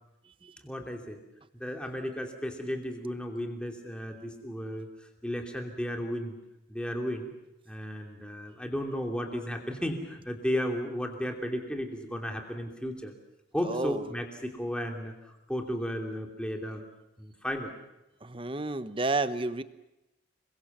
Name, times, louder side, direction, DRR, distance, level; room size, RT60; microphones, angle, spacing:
voice 1, 0.6-1.2 1.5-4.9 5.2-6.4 6.7-7.3 7.7-13.1 13.5-16.8 17.2-17.7, equal, 5° left, 3 dB, 2.8 m, -34 dB
voice 2, 13.6-14.0 18.2-19.6, right 3 dB, 25° right, 13 dB, 1.0 m, -31 dB
28.0 x 23.0 x 7.4 m, 0.93 s
head